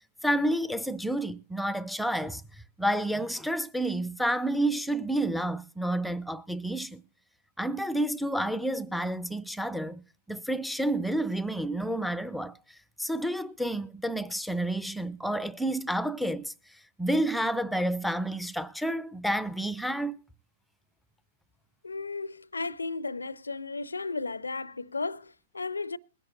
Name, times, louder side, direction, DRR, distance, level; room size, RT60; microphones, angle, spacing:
voice 1, 0.2-2.4 2.8-7.0 7.6-10.0 10.3-12.5 13.0-16.5 17.0-20.1, right 1 dB, ahead, 0.5 m, -29 dB
voice 2, 21.8-26.0, left 3 dB, 75° left, 0.5 m, -34 dB
21.0 x 10.5 x 2.4 m
figure-of-eight pair, 105°, 0 cm